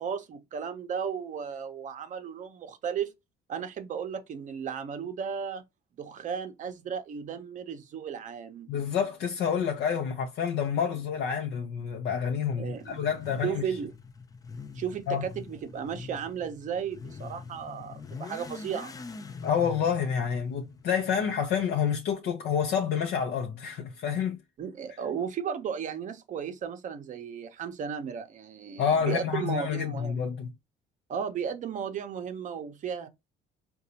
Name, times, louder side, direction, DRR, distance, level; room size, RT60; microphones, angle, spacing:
voice 1, 0.0-3.1 3.5-5.6 6.0-8.7 12.6-13.0 13.4-13.9 14.7-18.9 24.6-30.2 31.1-33.1, right 7 dB, 50° right, 0.6 m, -35 dB
voice 2, 8.7-13.6 15.1-15.2 19.4-24.4 28.8-30.5, left 7 dB, 70° left, 0.6 m, -28 dB
Motorcycle / Accelerating revving vroom, 12.7-21.6, left 4 dB, 20° left, 0.4 m, -44 dB
3.8 x 2.3 x 2.7 m
cardioid pair, 110°, 17 cm